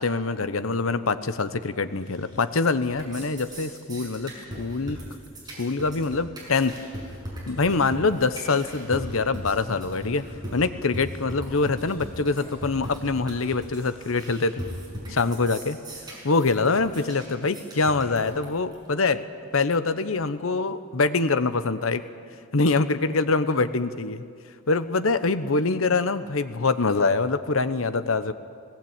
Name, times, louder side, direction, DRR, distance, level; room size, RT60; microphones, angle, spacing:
voice 1, 0.0-4.3 4.6-5.0 5.6-6.7 7.5-10.2 10.5-14.6 15.1-15.8 16.2-19.2 19.5-22.0 22.5-24.2 24.7-28.3, left 3 dB, 85° left, 12 dB, 1.0 m, -24 dB
sound 1, 2.1-2.6 2.8-18.8, equal, 20° right, 6.8 m, -38 dB
19.5 x 18.5 x 8.9 m, 2.2 s
head